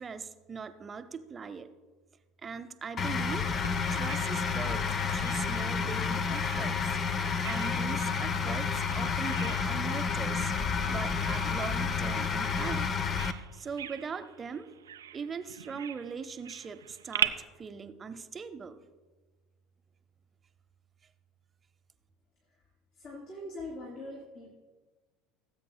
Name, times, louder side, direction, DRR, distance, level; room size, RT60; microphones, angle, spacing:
voice 1, 0.0-1.7 2.4-3.5 3.9-7.0 7.4-10.5 10.9-12.9 13.5-14.7 15.1-18.8, right 5 dB, 25° right, 9 dB, 0.7 m, -40 dB
sound 1, 3.0-13.3, left 5 dB, 35° left, 0.6 m, -30 dB
Bird vocalization bird call bird song, 3.6-17.3, right 10 dB, 75° right, 0.4 m, -42 dB
voice 2, 22.9-24.5, left 1 dB, 55° left, -6 dB, 3.2 m, -42 dB
19.0 x 8.5 x 2.2 m, 1.3 s
figure-of-eight pair, 65°, 0 cm